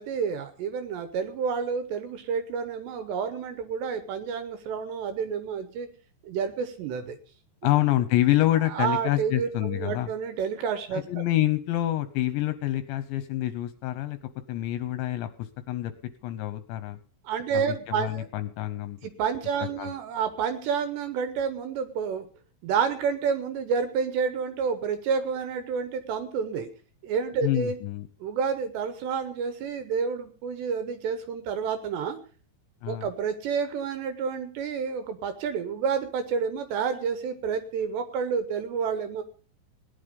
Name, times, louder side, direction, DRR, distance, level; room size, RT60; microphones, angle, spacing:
voice 1, 0.0-5.9 6.2-7.2 8.7-11.0 17.2-18.3 19.0-22.3 22.6-26.7 27.0-27.8 28.2-32.2 32.9-39.2, right 6 dB, 75° right, 10 dB, 2.8 m, -29 dB
voice 2, 7.6-10.1 10.9-14.2 14.5-15.9 16.2-17.0 17.5-19.0 19.8-19.9 27.4-28.1 32.8-33.1, left 14 dB, 75° left, 11 dB, 2.8 m, -27 dB
18.0 x 11.0 x 5.3 m, 0.39 s
omnidirectional pair, 5.9 m